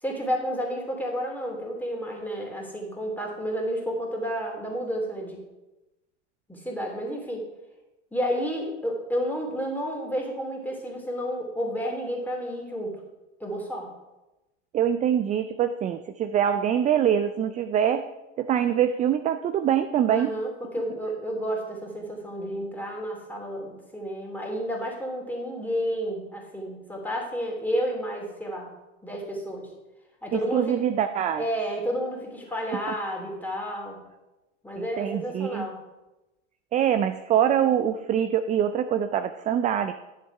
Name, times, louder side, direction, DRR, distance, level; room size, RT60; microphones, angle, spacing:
voice 1, 0.0-5.4 6.5-7.5 8.1-13.0 13.4-13.9 20.1-28.7 29.0-29.7 30.2-30.8 31.4-34.0 34.6-35.8, equal, 5° left, 0 dB, 2.8 m, -31 dB
voice 2, 14.7-18.0 18.4-20.3 30.3-31.4 34.8-35.7 36.7-39.9, right 9 dB, 20° right, 10 dB, 0.4 m, -24 dB
10.0 x 7.0 x 4.7 m, 1.0 s
hypercardioid pair, 95°, 35 cm